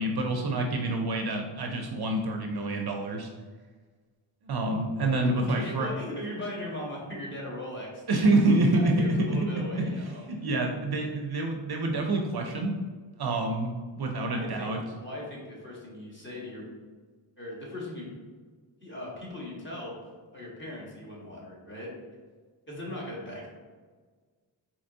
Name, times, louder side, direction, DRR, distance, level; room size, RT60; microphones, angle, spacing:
voice 1, 0.0-3.3 4.4-5.9 8.1-9.3 9.8-9.9 10.3-12.7 13.2-14.8, right 2 dB, 55° right, 2 dB, 0.5 m, -27 dB
voice 2, 5.4-10.6 14.3-16.7 17.4-18.1 18.8-19.9 20.3-21.9 22.7-23.5, left 1 dB, 25° left, -5 dB, 1.2 m, -39 dB
4.2 x 2.9 x 2.6 m, 1.5 s
wide cardioid pair, 90°, 48 cm